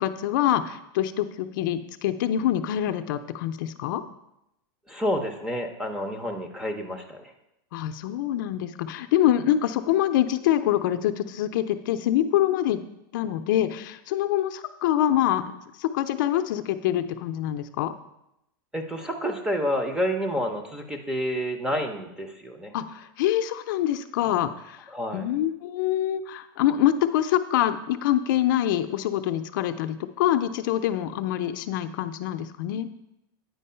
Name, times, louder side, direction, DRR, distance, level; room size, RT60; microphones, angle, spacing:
voice 1, 0.0-4.0 7.7-12.8 13.1-17.9 22.7-32.9, left 12 dB, 60° left, 8 dB, 0.5 m, -25 dB
voice 2, 4.9-7.3 18.7-22.7 24.9-25.3, equal, 5° right, 5 dB, 0.6 m, -29 dB
9.3 x 4.6 x 5.5 m, 0.84 s
supercardioid pair, 165°, 12 cm